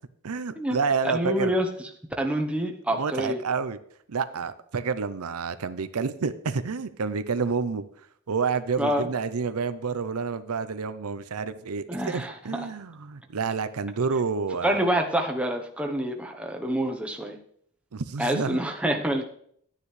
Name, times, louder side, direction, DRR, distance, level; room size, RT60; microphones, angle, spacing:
voice 1, 0.2-1.5 2.9-3.8 4.1-7.8 8.3-14.9 17.9-18.6, right 5 dB, 85° right, 12 dB, 0.6 m, -29 dB
voice 2, 1.0-1.9 2.2-3.4 8.8-9.1 11.9-12.7 14.6-17.4 18.2-19.2, right 1 dB, 5° right, 2 dB, 0.9 m, -27 dB
12.0 x 9.7 x 3.3 m, 0.65 s
head